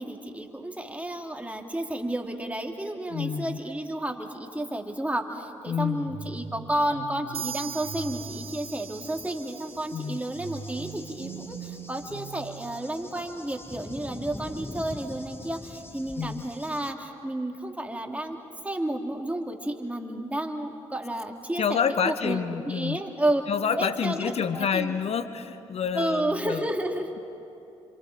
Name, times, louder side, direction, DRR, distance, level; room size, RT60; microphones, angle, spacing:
voice 1, 0.0-18.4 18.6-23.4 23.8-24.9 25.9-27.1, right 1 dB, 10° right, 2 dB, 2.6 m, -31 dB
voice 2, 3.1-3.6 5.7-6.2 9.9-10.2 16.2-16.4 21.6-23.0 23.5-26.7, left 7 dB, 55° left, 11 dB, 1.0 m, -28 dB
sound 1, 6.1-9.2 10.3-13.3, right 5 dB, 75° right, 1.7 m, -42 dB
sound 2, 7.3-10.9, right 7 dB, 50° right, 0.8 m, -41 dB
Cricket / Thunder, 7.9-16.9, left 1 dB, 20° left, 1.9 m, -44 dB
27.0 x 26.0 x 5.0 m, 2.7 s
supercardioid pair, 55°, 13 cm